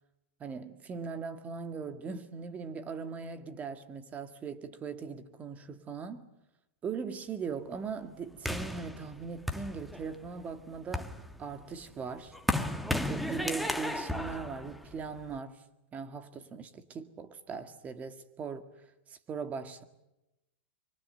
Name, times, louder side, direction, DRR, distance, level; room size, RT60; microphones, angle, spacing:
voice 1, 0.4-6.3 6.8-11.1 11.4-12.3 13.1-15.6 15.9-19.8, right 5 dB, 25° right, 2.0 m, -40 dB
sound 1, 8.4-10.3 10.7-15.4, left 1 dB, ahead, 1.6 m, -34 dB
24.5 x 24.5 x 8.0 m
hypercardioid pair, 135°, 6 cm